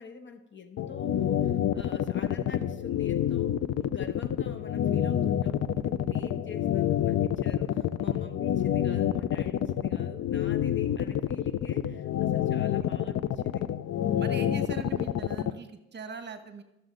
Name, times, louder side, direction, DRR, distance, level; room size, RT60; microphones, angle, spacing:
voice 1, 0.0-13.7, left 5 dB, 40° left, 8 dB, 1.0 m, -45 dB
sound 1, 0.8-15.5, left 11 dB, 55° left, 0.5 m, -27 dB
voice 2, 14.2-16.6, right 5 dB, 35° right, 8 dB, 1.1 m, -40 dB
13.0 x 6.9 x 3.9 m, 0.92 s
cardioid pair, 90°, 30 cm